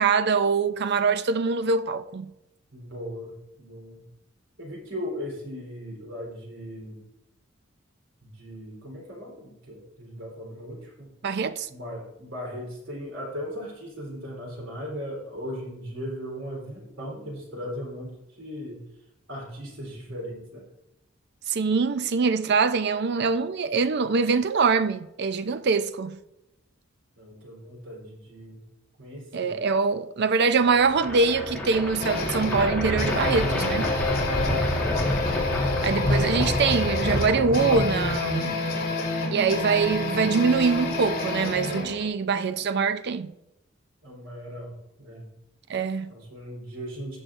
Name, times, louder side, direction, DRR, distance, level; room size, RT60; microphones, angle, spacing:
voice 1, 0.0-2.3 11.2-11.7 21.5-26.2 29.3-34.0 35.8-38.6 39.3-43.3 45.7-46.1, right 5 dB, 55° right, 0.5 m, -24 dB
voice 2, 2.7-3.3 3.6-4.0 4.6-7.0 8.2-11.1 11.7-18.1 18.4-18.8 19.3-20.6 27.2-28.6 29.0-29.5 34.6-35.6 44.0-45.3 46.1-47.2, equal, 75° right, 3.6 m, -38 dB
sound 1, 30.6-38.7, left 1 dB, 5° left, 1.6 m, -28 dB
sound 2, 32.0-42.1, left 3 dB, 50° left, 2.1 m, -29 dB
16.0 x 6.3 x 2.6 m
head